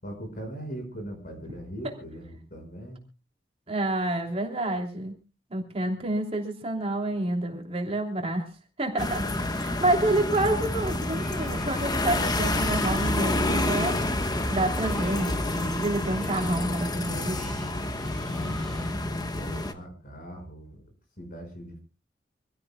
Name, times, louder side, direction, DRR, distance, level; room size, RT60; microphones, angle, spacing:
voice 1, 0.0-3.0 18.2-20.8 21.2-21.8, equal, 55° left, 4 dB, 5.7 m, -40 dB
voice 2, 3.7-5.1 5.5-8.5 8.8-17.4, right 1 dB, 35° right, 2 dB, 3.1 m, -28 dB
sound 1, 9.0-19.7, left 1 dB, 25° left, 1.2 m, -28 dB
Screech, 11.1-19.0, equal, 5° left, 3.2 m, -47 dB
26.0 x 16.0 x 2.3 m, 0.33 s
head